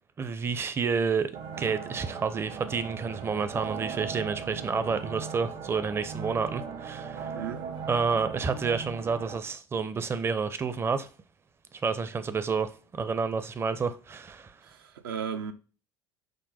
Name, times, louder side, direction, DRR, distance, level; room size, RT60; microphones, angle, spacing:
voice 1, 0.2-1.3 1.6-7.3 7.9-11.1 11.8-14.5, right 5 dB, 20° right, 0.5 m, -29 dB
sound 1, 1.3-9.4, right 6 dB, 50° right, 0.8 m, -38 dB
voice 2, 7.3-7.6 14.6-15.5, right 7 dB, 75° right, 0.5 m, -35 dB
6.2 x 2.1 x 4.1 m
hypercardioid pair, 70°, 12 cm